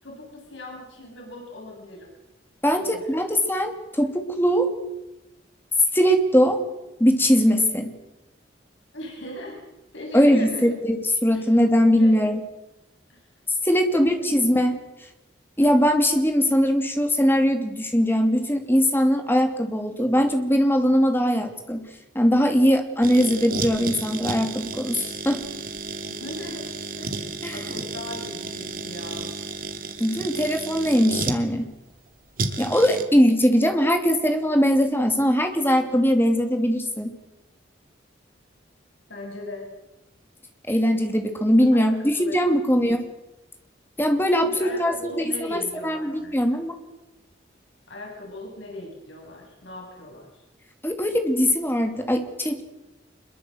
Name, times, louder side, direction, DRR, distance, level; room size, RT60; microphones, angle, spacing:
voice 1, 0.0-2.1 2.8-3.2 8.9-9.6 9.9-10.8 11.3-11.5 11.9-12.1 13.1-13.2 13.8-14.3 26.1-26.7 27.0-29.3 39.1-39.7 41.7-42.4 44.4-46.4 47.9-50.3, left 1 dB, 85° left, 0 dB, 7.3 m, -39 dB
voice 2, 2.6-4.7 5.9-6.6 7.0-7.9 10.1-12.4 13.6-14.8 15.6-21.8 22.1-25.4 27.4-27.6 30.0-31.7 32.6-37.1 40.7-43.1 44.0-46.8 50.8-52.6, equal, 10° left, 5 dB, 2.7 m, -21 dB
sound 1, 23.0-31.4 32.4-33.0, right 3 dB, 50° right, 2.4 m, -32 dB
25.5 x 22.5 x 7.9 m, 0.97 s
head